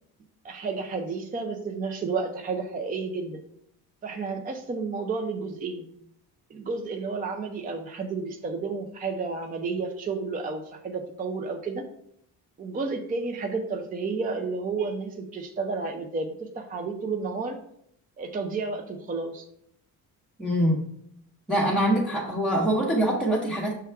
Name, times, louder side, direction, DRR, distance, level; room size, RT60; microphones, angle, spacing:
voice 1, 0.4-3.4 4.0-5.9 6.5-11.9 12.6-17.6 18.2-19.4, right 4 dB, 25° right, 4 dB, 0.5 m, -31 dB
voice 2, 20.4-20.8 21.5-23.7, right 1 dB, 5° right, -6 dB, 1.0 m, -24 dB
6.1 x 3.4 x 4.5 m, 0.70 s
cardioid pair, 140°, 37 cm